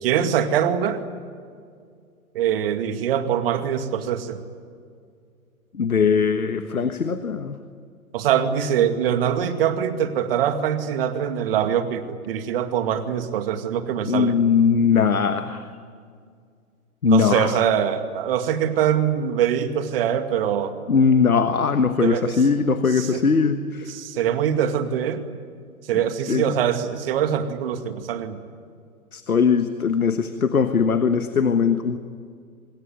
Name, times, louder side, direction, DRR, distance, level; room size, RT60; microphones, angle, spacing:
voice 1, 0.0-1.0 2.3-4.4 8.1-14.4 17.0-20.7 22.0-22.3 23.0-23.3 23.9-25.2 25.9-28.4, right 9 dB, 40° right, 8 dB, 2.3 m, -23 dB
voice 2, 5.7-7.6 14.1-15.7 17.0-17.6 20.9-23.9 26.3-26.5 29.1-32.0, left 5 dB, 75° left, 10 dB, 1.5 m, -20 dB
25.5 x 21.5 x 9.4 m, 2.2 s
figure-of-eight pair, 125°, 44 cm